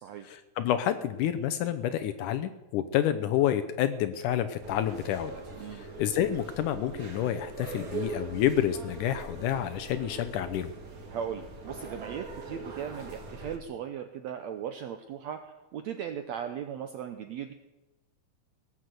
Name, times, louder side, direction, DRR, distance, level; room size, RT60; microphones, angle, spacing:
voice 1, 0.3-5.3 5.8-10.7, left 11 dB, 75° left, 10 dB, 2.0 m, -29 dB
sound 1, 4.6-13.6, right 3 dB, 35° right, 1.5 m, -41 dB
voice 2, 11.1-15.4 15.7-17.5, right 8 dB, 75° right, 7 dB, 1.6 m, -37 dB
18.0 x 7.9 x 7.8 m, 1.1 s
omnidirectional pair, 4.1 m